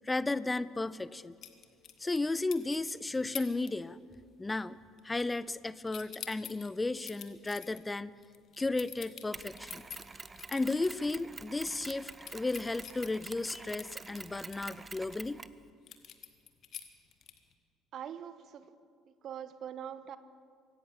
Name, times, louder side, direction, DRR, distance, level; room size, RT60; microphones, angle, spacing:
voice 1, 0.0-1.4 2.0-4.0 4.4-4.8 5.0-8.1 8.6-9.8 10.5-15.4, left 2 dB, 15° left, 18 dB, 0.7 m, -34 dB
sound 1, 1.4-2.3 2.5-2.9 3.3-3.7 4.0-4.3 4.6-5.6 5.9-10.9 11.3-11.4 11.7-15.3 15.9-17.5, left 9 dB, 45° left, 1.8 m, -46 dB
Mechanisms, 9.3-15.6, right 4 dB, 25° right, 0.8 m, -47 dB
voice 2, 17.9-18.7 19.1-20.2, right 9 dB, 45° right, 14 dB, 1.1 m, -43 dB
25.0 x 17.0 x 7.2 m, 2.2 s
figure-of-eight pair, 55°, 0 cm